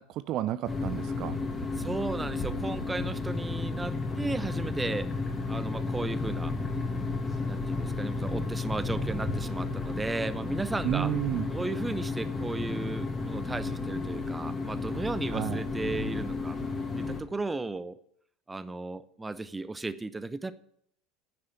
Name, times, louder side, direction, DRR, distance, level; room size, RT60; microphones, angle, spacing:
voice 1, 0.0-1.4 10.8-11.5 15.3-15.6, right 13 dB, 45° right, 15 dB, 0.5 m, -31 dB
sound 1, 0.7-17.2, left 3 dB, 15° left, 2.5 m, -32 dB
voice 2, 1.8-5.1 5.5-6.5 7.5-11.1 11.5-16.6 17.0-18.0 18.5-20.5, right 3 dB, 10° right, 15 dB, 0.8 m, -35 dB
9.7 x 9.6 x 9.4 m, 0.70 s
figure-of-eight pair, 75°, 0 cm